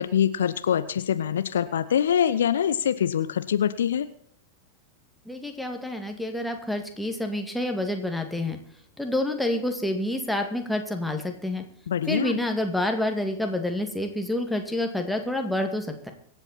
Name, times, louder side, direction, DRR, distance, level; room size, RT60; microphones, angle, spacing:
voice 1, 0.0-4.1 11.9-12.4, left 9 dB, 65° left, 13 dB, 0.7 m, -24 dB
voice 2, 5.3-8.6 9.0-11.6 12.1-16.1, left 1 dB, ahead, 3 dB, 2.2 m, -28 dB
24.5 x 8.2 x 4.3 m, 0.63 s
figure-of-eight pair, 90°, 0 cm